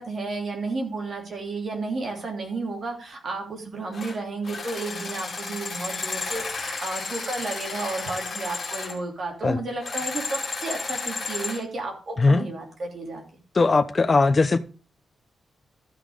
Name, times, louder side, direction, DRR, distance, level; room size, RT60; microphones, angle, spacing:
voice 1, 0.0-13.2, right 3 dB, 45° right, 3.0 m, -32 dB
sound 1, 3.9-4.2 4.4-9.0 9.8-11.6, left 4 dB, 45° left, 3.2 m, -32 dB
voice 2, 12.2-12.5 13.5-14.6, left 3 dB, 25° left, 0.7 m, -19 dB
13.5 x 5.7 x 5.0 m
wide cardioid pair, 165°, 0 cm